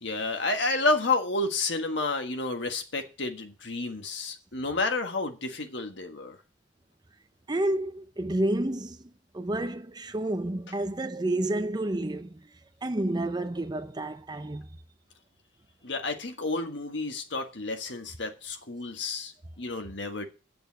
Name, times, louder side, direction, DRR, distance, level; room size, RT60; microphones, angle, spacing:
voice 1, 0.0-6.4 15.8-20.3, left 3 dB, 65° left, 1.5 m, -30 dB
voice 2, 7.5-9.0 9.3-12.4 12.8-14.7, right 1 dB, 20° right, 0.6 m, -30 dB
8.8 x 6.8 x 7.3 m
head